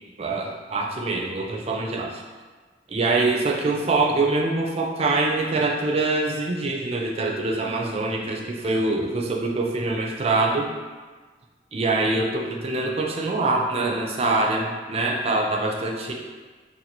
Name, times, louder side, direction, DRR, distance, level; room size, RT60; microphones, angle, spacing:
voice 1, 0.2-2.2 2.9-10.7 11.7-16.1, right 2 dB, 35° right, 0 dB, 0.4 m, -24 dB
2.9 x 2.6 x 4.0 m, 1.4 s
head